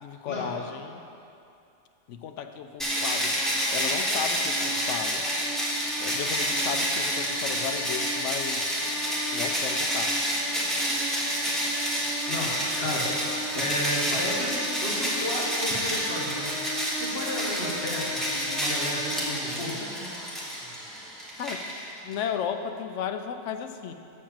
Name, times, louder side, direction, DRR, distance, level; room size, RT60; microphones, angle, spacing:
voice 1, 0.0-1.0 2.1-3.3 3.7-5.3 6.0-8.7 9.3-10.2 21.4-21.6 22.0-23.9, left 7 dB, 70° left, 8 dB, 0.9 m, -34 dB
sound 1, 2.8-22.1, equal, ahead, 1.3 m, -28 dB
voice 2, 12.3-19.8, left 1 dB, 50° left, -4 dB, 1.8 m, -33 dB
7.3 x 6.5 x 7.3 m, 2.6 s
omnidirectional pair, 1.4 m